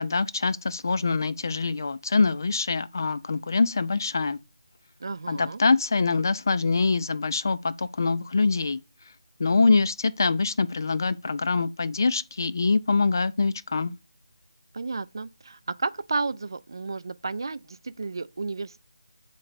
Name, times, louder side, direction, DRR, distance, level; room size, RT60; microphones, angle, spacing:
voice 1, 0.0-4.4 5.3-8.8 9.4-13.9, left 4 dB, 40° left, 0.3 m, -24 dB
voice 2, 5.0-5.6 14.7-18.8, right 3 dB, 50° right, 0.4 m, -32 dB
7.8 x 3.2 x 4.0 m
figure-of-eight pair, 170°, 3 cm